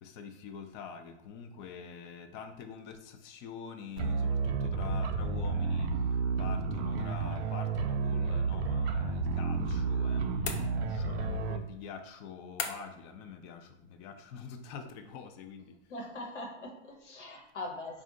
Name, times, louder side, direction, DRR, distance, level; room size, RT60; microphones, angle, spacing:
voice 1, 0.0-16.0, left 6 dB, 30° left, 7 dB, 0.5 m, -46 dB
sound 1, 4.0-11.6, right 4 dB, 60° right, 0.6 m, -31 dB
sound 2, 10.4-11.2 12.6-13.1, left 6 dB, 60° left, 0.8 m, -38 dB
voice 2, 15.9-18.0, left 2 dB, 90° left, 0 dB, 1.4 m, -41 dB
4.2 x 2.5 x 3.7 m, 0.80 s
hypercardioid pair, 125°, 35 cm